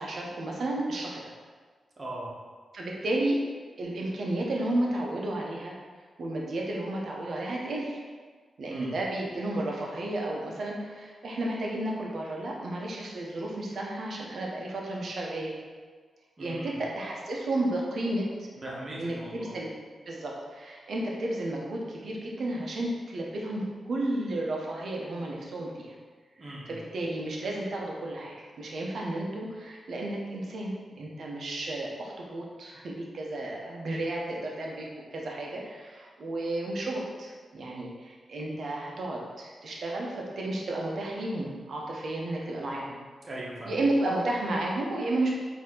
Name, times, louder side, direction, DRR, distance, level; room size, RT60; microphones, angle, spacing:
voice 1, 0.0-1.3 2.7-3.4 3.8-5.8 6.2-8.0 8.6-15.6 16.4-18.5 19.0-19.7 20.1-25.9 26.7-43.0 43.7-45.3, right 1 dB, 70° right, -2 dB, 0.8 m, -32 dB
voice 2, 2.0-2.3 8.7-9.0 16.4-16.8 18.6-19.5 26.4-26.8 43.2-43.8, right 1 dB, 45° right, -5 dB, 1.4 m, -40 dB
4.2 x 2.9 x 3.8 m, 1.5 s
cardioid pair, 55°, 0 cm